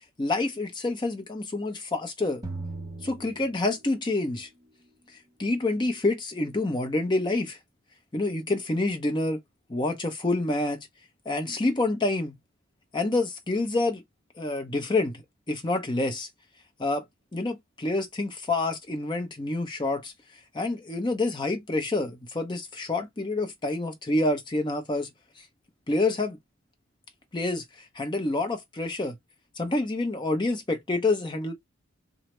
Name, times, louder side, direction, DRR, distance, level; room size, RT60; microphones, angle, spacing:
voice 1, 0.2-2.4 3.0-4.5 5.4-7.6 8.1-9.4 9.7-10.9 11.3-12.4 12.9-14.0 14.4-15.2 15.5-16.3 16.8-17.0 17.3-20.1 20.5-25.1 25.9-26.4 27.3-27.6 28.0-29.2 29.6-31.5, left 2 dB, 20° left, 0.5 m, -27 dB
sound 1, 2.4-4.2, right 2 dB, 15° right, 0.7 m, -38 dB
3.1 x 2.0 x 2.9 m
head